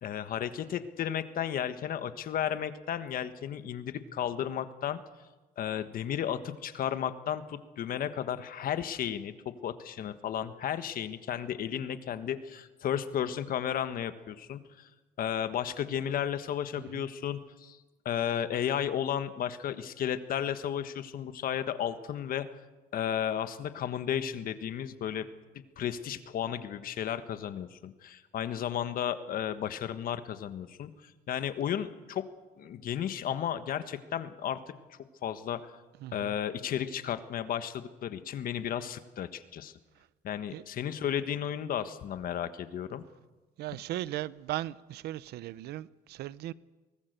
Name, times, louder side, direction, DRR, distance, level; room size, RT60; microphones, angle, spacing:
voice 1, 0.0-5.0 5.6-14.9 15.2-17.8 18.0-22.5 22.9-25.3 25.8-30.9 31.3-32.3 32.6-34.6 35.2-35.7 36.1-39.7 40.2-43.0, left 9 dB, 60° left, 1.5 m, -33 dB
voice 2, 16.8-17.1 36.0-36.4 40.5-40.6 43.6-46.5, right 15 dB, 75° right, 0.7 m, -37 dB
23.5 x 19.5 x 6.8 m
cardioid pair, 110°, 17 cm